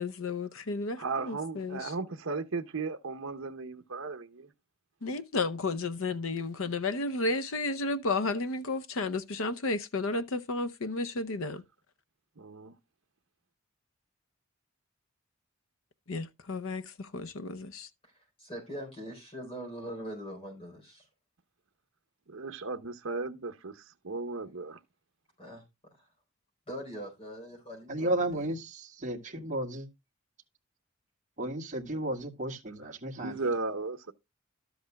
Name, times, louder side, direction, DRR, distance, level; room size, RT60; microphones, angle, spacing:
voice 1, 0.0-1.9 5.0-11.6 16.1-17.9, left 3 dB, 70° left, 0.7 m, -32 dB
voice 2, 1.0-4.5 12.4-12.7 22.3-24.8 33.2-34.1, right 3 dB, 75° right, 0.9 m, -35 dB
voice 3, 18.4-21.1 25.4-25.6 25.9-26.1 26.7-28.4, equal, 30° left, 4.0 m, -42 dB
voice 4, 27.9-29.9 31.4-33.4, right 1 dB, 35° right, 1.9 m, -33 dB
12.5 x 8.0 x 2.3 m
head